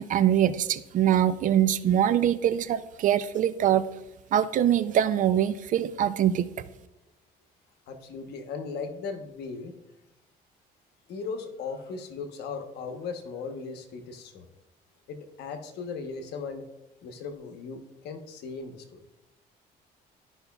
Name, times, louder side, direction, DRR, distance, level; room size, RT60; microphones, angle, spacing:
voice 1, 0.0-3.9 4.3-6.5, right 10 dB, 50° right, 15 dB, 0.4 m, -23 dB
voice 2, 7.9-9.7 11.1-14.5 15.1-16.6 17.0-19.0, left 5 dB, 80° left, 7 dB, 1.0 m, -37 dB
12.5 x 5.4 x 2.3 m, 0.96 s
cardioid pair, 110°, 17 cm